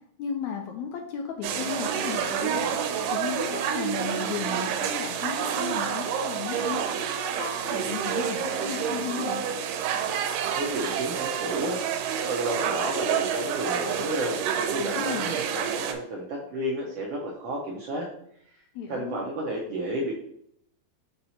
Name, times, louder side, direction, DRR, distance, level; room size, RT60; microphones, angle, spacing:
voice 1, 0.2-9.4 15.0-15.4 18.8-19.2, left 7 dB, 80° left, 3 dB, 1.7 m, -35 dB
sound 1, 1.4-15.9, right 8 dB, 90° right, 2.3 m, -29 dB
voice 2, 10.5-11.8 12.3-18.1 18.9-20.1, right 1 dB, 75° right, -2 dB, 1.4 m, -31 dB
5.9 x 2.9 x 5.5 m, 0.69 s
omnidirectional pair, 3.8 m